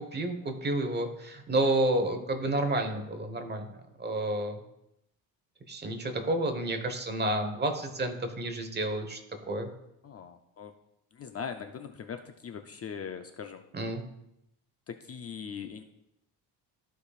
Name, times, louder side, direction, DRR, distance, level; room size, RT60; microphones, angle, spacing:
voice 1, 0.0-3.7 4.0-4.6 5.7-9.2 9.5-9.7 13.7-14.0, right 1 dB, 25° right, 6 dB, 1.2 m, -30 dB
voice 2, 10.0-10.7 11.1-13.7 14.9-15.8, left 6 dB, 35° left, 7 dB, 0.5 m, -40 dB
14.0 x 5.1 x 2.4 m, 0.83 s
cardioid pair, 105°, 40 cm